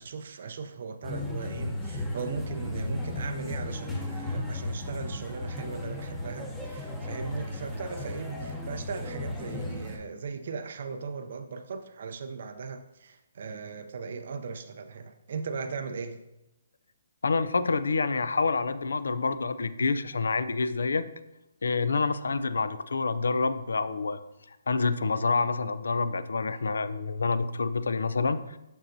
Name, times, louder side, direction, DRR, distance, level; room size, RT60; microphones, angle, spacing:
voice 1, 0.0-16.2, right 5 dB, 60° right, 7 dB, 0.4 m, -38 dB
sound 1, 1.0-10.0, left 1 dB, 5° left, 0.8 m, -35 dB
voice 2, 17.2-21.1 21.6-24.2 24.5-28.6, left 4 dB, 85° left, 13 dB, 0.4 m, -27 dB
6.7 x 6.2 x 2.6 m, 0.92 s
hypercardioid pair, 155°, 0 cm